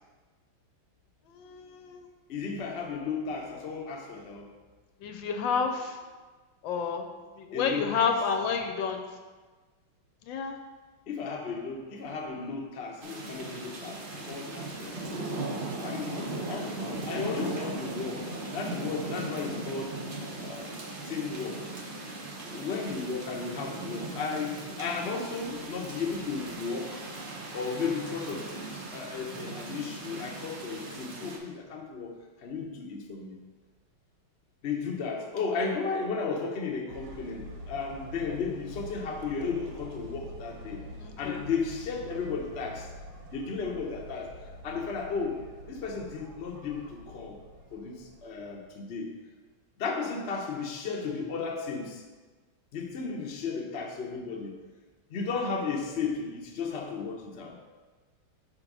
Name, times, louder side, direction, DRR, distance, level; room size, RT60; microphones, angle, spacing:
voice 1, 1.3-2.1 5.0-6.0 6.6-7.1 7.4-9.0 10.2-10.6 41.0-41.4, left 6 dB, 75° left, 5 dB, 1.3 m, -30 dB
voice 2, 2.3-4.5 7.5-8.1 11.1-15.2 15.8-18.2 18.5-20.0 20.4-20.7 21.0-21.7 22.5-27.0 27.5-33.4 34.6-40.8 41.2-42.9 43.3-44.3 44.6-45.4 45.7-47.4 47.7-49.1 49.8-52.0 52.7-54.6 55.1-57.6, left 5 dB, 55° left, 1 dB, 0.7 m, -34 dB
sound 1, 13.0-31.4, right 2 dB, 65° right, 0.5 m, -38 dB
sound 2, 36.9-48.7, equal, 45° right, 1.0 m, -46 dB
5.2 x 4.4 x 6.0 m, 1.3 s
omnidirectional pair, 2.2 m